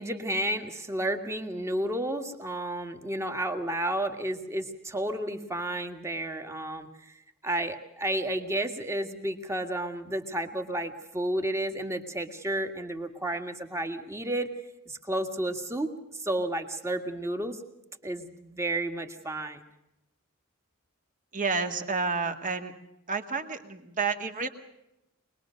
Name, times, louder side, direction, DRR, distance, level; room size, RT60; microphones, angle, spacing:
voice 1, 0.0-7.1 7.4-14.5 14.9-17.6 18.0-19.6, right 1 dB, 15° right, 6 dB, 1.8 m, -32 dB
voice 2, 21.3-22.7 23.1-24.5, right 4 dB, 35° right, 6 dB, 2.0 m, -30 dB
24.5 x 20.5 x 6.4 m, 0.87 s
head